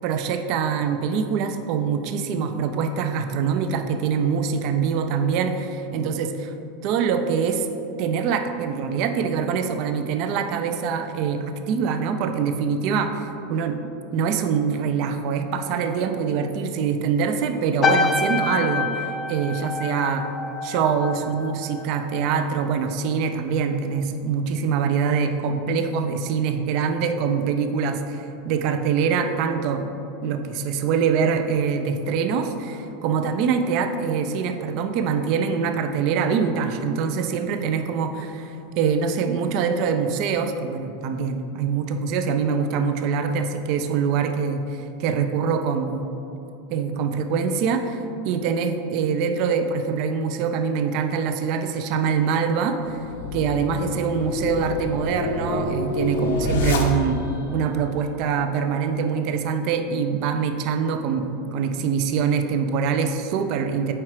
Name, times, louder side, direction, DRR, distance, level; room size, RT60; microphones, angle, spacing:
voice 1, 0.0-6.3 6.8-7.7 8.0-13.7 14.1-20.3 20.6-29.9 30.2-46.1 46.7-48.0 48.2-53.0 53.3-57.2 57.5-63.9, right 6 dB, 50° right, 7 dB, 0.4 m, -24 dB
sound 1, 17.8-22.4 22.7-23.1, left 4 dB, 25° left, 0.4 m, -26 dB
sound 2, 52.8-57.4, left 2 dB, 85° left, 0.7 m, -27 dB
4.8 x 4.3 x 4.6 m, 2.8 s
supercardioid pair, 150°, 0 cm